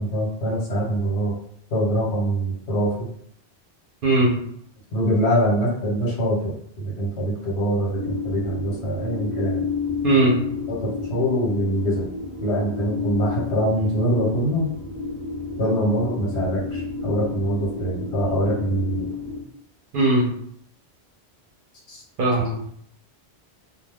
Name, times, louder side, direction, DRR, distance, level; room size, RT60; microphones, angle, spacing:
voice 1, 0.0-1.3 1.7-3.1 4.9-9.6 10.7-12.1 12.4-14.7 15.6-19.1 21.9-22.0, right 1 dB, 80° left, -4 dB, 1.2 m, -24 dB
voice 2, 4.0-4.4 10.0-10.4 19.9-20.3 22.2-22.7, right 2 dB, 60° right, -3 dB, 0.7 m, -19 dB
sound 1, 7.9-19.4, left 5 dB, 15° right, 0.6 m, -30 dB
2.2 x 2.2 x 3.3 m, 0.66 s
omnidirectional pair, 1.1 m